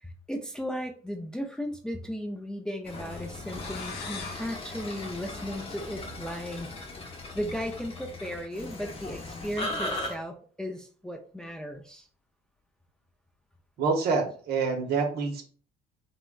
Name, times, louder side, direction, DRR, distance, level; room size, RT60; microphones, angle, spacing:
voice 1, 0.0-6.7 7.3-12.1, equal, 5° left, 4 dB, 0.3 m, -36 dB
sound 1, 2.8-10.1, left 2 dB, 35° left, 0.7 m, -38 dB
sound 2, 3.5-6.1, left 5 dB, 75° left, 0.7 m, -44 dB
voice 2, 13.8-15.4, right 4 dB, 70° right, 4 dB, 0.8 m, -27 dB
3.5 x 2.1 x 2.3 m, 0.42 s
cardioid pair, 110°, 17 cm